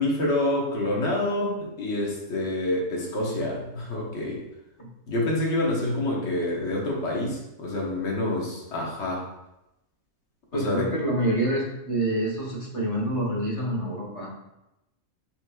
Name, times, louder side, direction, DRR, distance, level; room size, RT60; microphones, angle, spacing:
voice 1, 0.0-4.4 5.1-9.2 10.5-10.9, left 1 dB, 55° left, -2 dB, 1.3 m, -27 dB
voice 2, 10.5-14.3, right 1 dB, 30° left, -2 dB, 0.8 m, -27 dB
6.8 x 3.2 x 2.3 m, 0.91 s
omnidirectional pair, 1.5 m